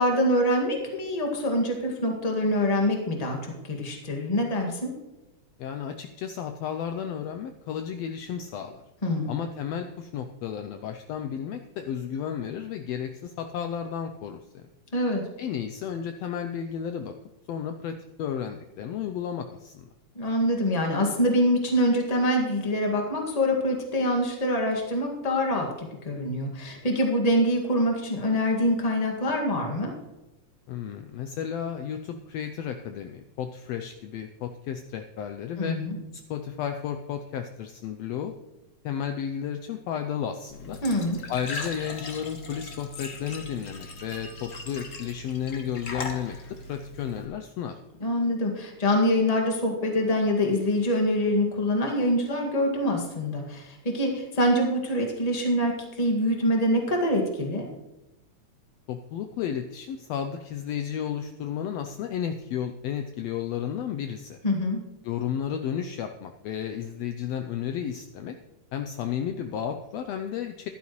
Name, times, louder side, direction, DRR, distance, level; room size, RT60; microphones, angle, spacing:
voice 1, 0.0-4.9 9.0-9.4 14.9-15.2 20.1-29.9 35.6-36.0 40.8-41.2 48.0-55.7 56.0-57.6 64.4-64.8, equal, 15° left, 1 dB, 1.5 m, -25 dB
voice 2, 5.6-8.8 9.3-14.6 15.4-17.1 17.5-19.9 30.7-35.8 36.3-38.3 38.8-40.8 41.3-46.4 46.7-47.8 58.9-64.4 65.0-68.4 68.7-70.7, left 8 dB, 75° left, 6 dB, 1.6 m, -33 dB
Glass / Trickle dribble / Fill (with liquid), 40.5-47.2, left 2 dB, 40° left, 1.1 m, -39 dB
14.5 x 11.0 x 3.1 m, 1.0 s
omnidirectional pair, 3.3 m